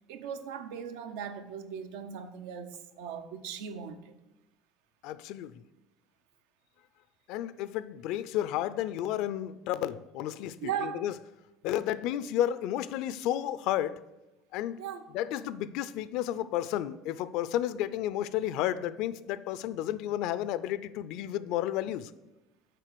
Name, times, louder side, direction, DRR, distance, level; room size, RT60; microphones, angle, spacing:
voice 1, 0.0-4.1 10.6-11.0 14.8-15.0, right 8 dB, 85° right, 0.7 m, -38 dB
voice 2, 5.0-5.5 7.3-11.1 11.6-14.0 14.5-14.8 15.1-22.1, left 12 dB, 65° left, 0.4 m, -32 dB
7.6 x 4.7 x 6.7 m
cardioid pair, 135°, 0 cm